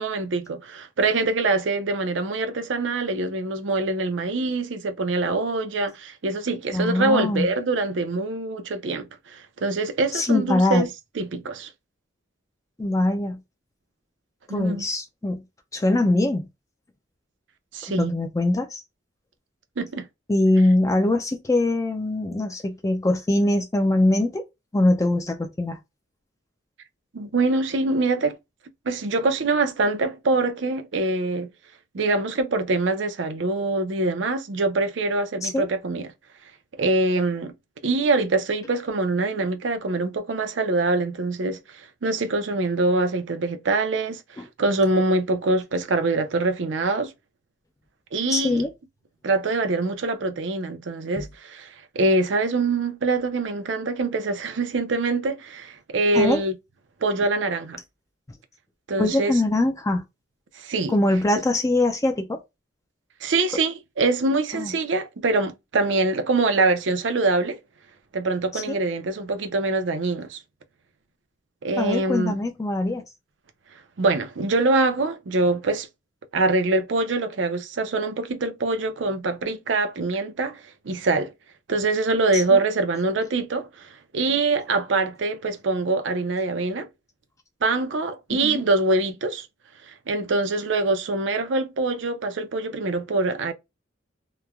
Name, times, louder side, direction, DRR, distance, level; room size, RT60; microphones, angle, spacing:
voice 1, 0.0-10.9 11.2-11.7 14.5-14.9 17.7-18.2 19.8-20.0 27.1-28.4 28.9-31.5 31.9-36.1 36.8-37.5 37.8-47.1 48.1-48.6 49.2-56.5 57.0-57.8 58.9-59.3 60.6-60.9 63.2-67.6 68.1-70.4 71.6-72.4 74.0-75.9 76.3-81.3 81.7-86.9 87.6-89.5 89.9-93.5, right 3 dB, 75° right, 0.5 m, -24 dB
voice 2, 6.7-7.5 10.1-10.8 12.8-13.4 14.5-15.4 15.7-16.5 18.0-18.8 20.3-24.4 24.7-25.8 35.4-35.7 44.4-44.5 48.3-48.7 51.2-51.3 56.1-56.4 59.0-60.0 60.9-62.4 64.5-64.7 68.5-68.8 71.8-73.0 82.3-82.6 88.3-88.6, left 2 dB, 15° left, 0.4 m, -22 dB
3.0 x 2.1 x 2.3 m
head